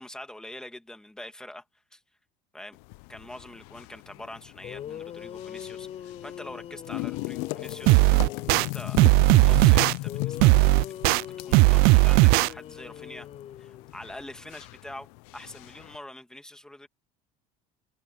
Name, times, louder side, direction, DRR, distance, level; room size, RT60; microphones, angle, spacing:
voice 1, 0.0-1.6 1.9-2.0 2.5-2.8 3.1-8.0 8.6-9.0 9.4-10.6 11.0-13.3 13.6-16.9, left 1 dB, 5° left, 2.2 m, -44 dB
sound 1, 2.7-16.0, left 24 dB, 75° left, 0.7 m, -38 dB
sound 2, 4.6-8.8 10.0-14.1, left 10 dB, 35° left, 5.1 m, -42 dB
sound 3, 7.9-8.6 9.0-9.9 10.4-11.2 11.5-12.5, right 26 dB, 65° right, 0.5 m, -17 dB
open air
cardioid pair, 145°, 17 cm